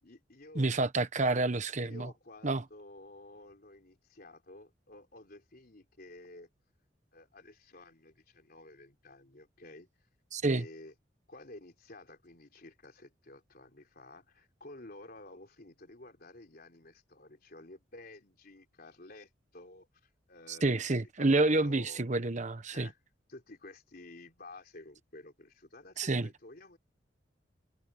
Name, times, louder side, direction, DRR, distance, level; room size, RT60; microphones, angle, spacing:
voice 1, 0.0-0.8 1.8-6.5 7.1-10.1 10.4-10.9 11.3-22.0 22.7-23.0 23.3-26.8, left 2 dB, 55° left, 3.6 m, -52 dB
voice 2, 0.5-2.1 2.4-2.6 10.3-10.6 20.5-22.9 26.0-26.3, right 2 dB, 40° right, 1.1 m, -29 dB
head